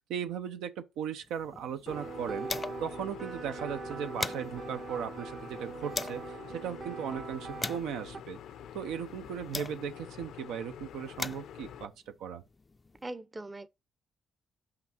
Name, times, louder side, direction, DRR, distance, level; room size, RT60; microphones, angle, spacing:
voice 1, 0.1-2.5 2.8-8.4 8.7-11.9 12.2-12.4, right 8 dB, 90° right, 0.7 m, -37 dB
sound 1, 1.2-3.0 3.3-3.4 3.8-6.3 6.9-10.1 10.8-13.0, left 3 dB, 25° left, 0.4 m, -41 dB
sound 2, 1.9-11.9, left 9 dB, 80° left, 0.5 m, -47 dB
sound 3, 1.9-8.2, right 4 dB, 45° right, 0.9 m, -42 dB
voice 2, 13.0-13.7, right 2 dB, 20° right, 0.6 m, -40 dB
6.0 x 5.2 x 4.4 m
cardioid pair, 90°, 0 cm